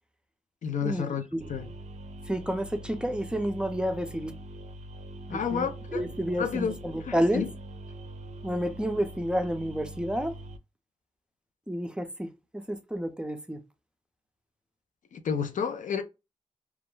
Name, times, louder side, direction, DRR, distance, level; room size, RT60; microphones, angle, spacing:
voice 1, 0.6-1.2 1.5-1.7 5.3-6.0 6.4-6.8 7.0-7.5 15.1-16.0, left 6 dB, 80° left, 0.4 m, -30 dB
sound 1, 1.4-10.6, right 1 dB, 65° right, 0.4 m, -43 dB
voice 2, 2.3-4.3 5.3-7.5 8.4-10.4 11.7-13.6, equal, 5° right, 0.4 m, -30 dB
2.3 x 2.1 x 3.0 m
cardioid pair, 55°, 13 cm